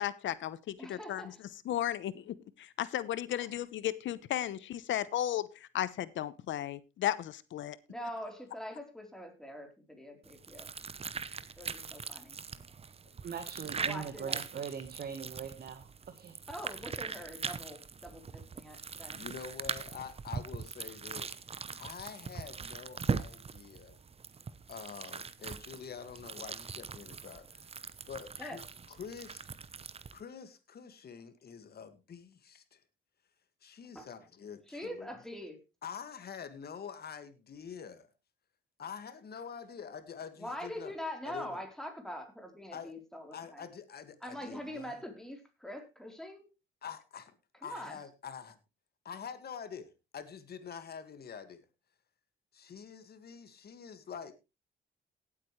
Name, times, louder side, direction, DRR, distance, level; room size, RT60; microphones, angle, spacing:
voice 1, 0.0-1.2 1.7-7.8, left 12 dB, 70° left, 0.9 m, -35 dB
voice 2, 0.8-1.4 3.3-3.5 7.9-10.7 11.6-12.4 13.8-14.6 16.5-19.3 28.4-28.6 34.0-34.1 34.7-35.6 40.4-43.7 44.2-46.5 47.6-48.0, equal, 5° left, 3.7 m, -44 dB
sound 1, 10.2-30.2, right 5 dB, 30° right, 0.8 m, -41 dB
voice 3, 13.2-15.9 16.2-16.4, right 7 dB, 50° right, 1.4 m, -41 dB
voice 4, 19.1-24.0 24.7-27.7 28.1-28.6 28.9-29.5 30.1-32.8 33.6-35.1 35.8-38.1 38.8-40.9 41.2-41.6 42.7-42.9 43.3-45.0 46.8-47.4 47.6-48.6 49.0-51.7 52.5-54.3, left 7 dB, 50° left, 2.0 m, -46 dB
18.0 x 8.6 x 3.2 m
cardioid pair, 90°, 20 cm